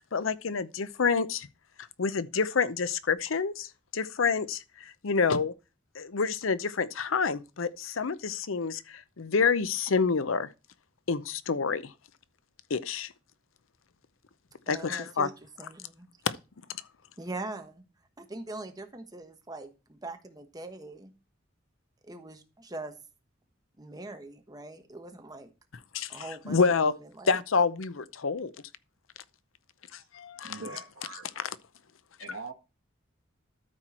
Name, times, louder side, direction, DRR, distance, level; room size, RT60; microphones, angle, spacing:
voice 1, 0.1-1.5 1.8-5.5 5.9-10.5 11.1-11.9 12.7-13.1 14.7-15.3 16.3-16.4 16.7-16.8 25.9-26.9 27.3-28.5 29.9-30.8 31.4-31.6 32.3-32.4, left 5 dB, 90° left, 0.7 m, -28 dB
voice 2, 14.7-15.3 15.6-16.1 17.2-17.8 18.2-21.1 22.0-23.0 23.8-25.5 26.1-26.6 26.8-27.3, right 2 dB, 20° right, 1.3 m, -42 dB
voice 3, 30.4-31.3 32.2-32.5, right 4 dB, 75° right, 1.6 m, -42 dB
13.0 x 4.6 x 4.3 m
head